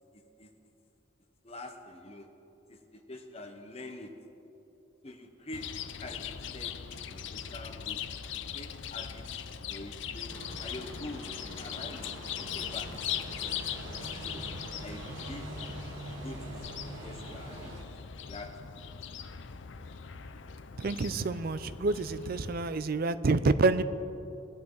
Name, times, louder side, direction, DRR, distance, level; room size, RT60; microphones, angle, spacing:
voice 1, 0.1-0.5 1.4-2.4 2.7-4.3 5.0-6.8 7.1-9.3 9.7-13.1 13.4-14.5 14.8-15.6 16.2-16.7 17.0-17.9 18.2-18.9, left 2 dB, 30° left, 4 dB, 1.1 m, -46 dB
Chirp tweet, 5.5-22.7, left 8 dB, 70° left, 0.6 m, -40 dB
sound 1, 10.3-17.8, right 1 dB, 90° right, 1.5 m, -44 dB
voice 2, 20.8-23.8, right 3 dB, 50° right, 13 dB, 0.5 m, -28 dB
21.5 x 8.6 x 3.9 m, 2.9 s
head